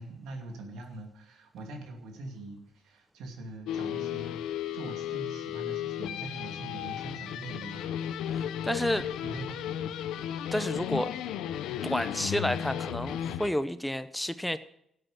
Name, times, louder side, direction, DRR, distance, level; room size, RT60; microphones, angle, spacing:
voice 1, 0.0-7.9 9.2-9.9 10.2-10.3, right 2 dB, 85° right, 3 dB, 2.6 m, -43 dB
sound 1, 3.7-13.5, left 10 dB, 90° left, 0.6 m, -34 dB
voice 2, 8.3-9.0 10.5-11.1 11.8-14.6, left 1 dB, 5° left, 13 dB, 0.6 m, -30 dB
13.0 x 7.9 x 7.5 m, 0.73 s
cardioid pair, 90°, 0 cm